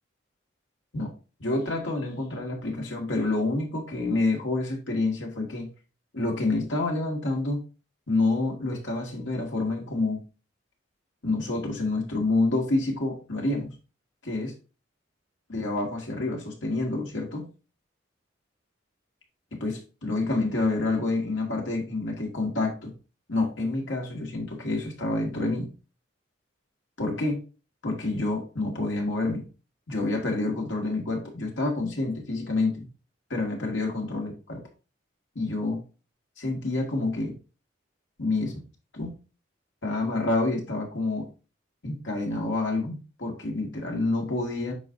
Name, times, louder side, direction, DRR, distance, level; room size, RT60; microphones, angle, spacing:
voice 1, 1.4-5.7 6.1-7.6 8.1-10.2 11.2-13.7 14.2-14.5 15.5-17.5 19.5-22.9 23.3-25.7 27.0-27.4 27.8-29.4 29.9-32.8 33.3-34.6 35.4-35.8 36.4-37.3 38.2-38.5 38.9-39.1 39.8-41.3 41.8-44.7, left 2 dB, 80° left, 0 dB, 2.1 m, -28 dB
8.3 x 5.2 x 2.7 m, 0.33 s
head